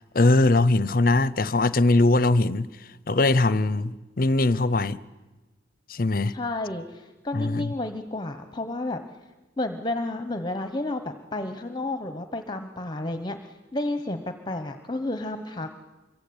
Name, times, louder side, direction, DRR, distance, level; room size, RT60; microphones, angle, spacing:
voice 1, 0.1-2.7 3.1-5.0 5.9-6.3 7.3-7.7, left 2 dB, 50° left, 0.8 m, -21 dB
voice 2, 6.3-9.0 9.6-15.7, left 2 dB, 25° left, 1.1 m, -31 dB
25.5 x 23.0 x 8.8 m
head